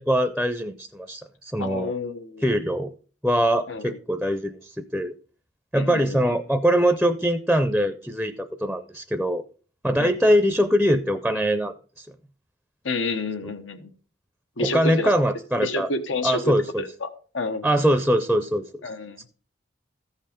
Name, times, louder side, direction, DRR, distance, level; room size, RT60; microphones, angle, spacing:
voice 1, 0.0-1.9 2.4-2.9 3.2-5.1 5.7-9.4 9.8-12.1 14.6-15.9 16.2-16.8 17.6-18.7, equal, ahead, 9 dB, 0.5 m, -22 dB
voice 2, 1.6-2.5 3.7-4.0 5.7-6.2 10.0-10.1 12.8-13.9 14.6-15.1 15.6-17.7 18.8-19.2, left 3 dB, 90° left, 9 dB, 1.2 m, -29 dB
14.5 x 5.6 x 5.0 m, 0.40 s
head